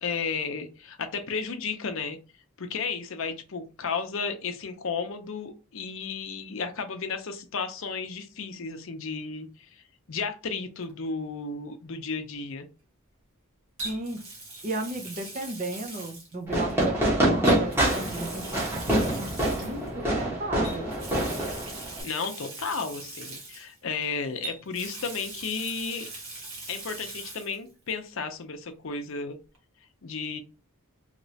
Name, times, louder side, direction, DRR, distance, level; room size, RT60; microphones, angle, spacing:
voice 1, 0.0-2.2 2.6-9.8 10.1-12.6 22.0-26.1 26.7-29.4 30.0-30.4, left 5 dB, 60° left, 7 dB, 0.6 m, -33 dB
Water tap faucet, 10.8-11.1 13.8-16.8 17.4-19.9 20.6-24.1 24.4-27.6 27.9-28.0 29.5-29.6, right 3 dB, 65° right, 1.1 m, -41 dB
voice 2, 13.8-14.2 14.6-18.6 18.9-19.3 19.6-20.9, right 2 dB, 35° right, 6 dB, 0.5 m, -34 dB
Fireworks, 16.5-22.0, right 1 dB, 10° right, 1.1 m, -26 dB
3.1 x 2.9 x 2.7 m, 0.32 s
head